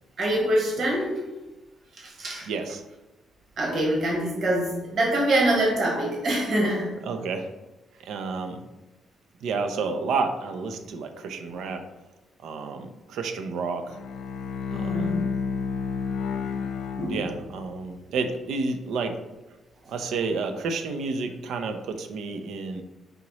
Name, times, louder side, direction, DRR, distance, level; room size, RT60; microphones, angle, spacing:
voice 1, 0.2-1.2 2.0-2.5 3.6-6.9 11.5-11.7 14.7-15.3 17.0-17.2, right 1 dB, 50° right, -2 dB, 1.3 m, -25 dB
voice 2, 2.5-2.8 7.1-7.5 8.0-8.6 9.4-11.8 12.4-14.0 14.7-15.1 17.1-19.2 19.9-22.8, right 4 dB, 80° right, 6 dB, 0.5 m, -30 dB
Bowed string instrument, 13.8-17.9, left 6 dB, 75° left, 0.3 m, -31 dB
4.9 x 2.9 x 3.0 m, 1.1 s
cardioid pair, 125°, 0 cm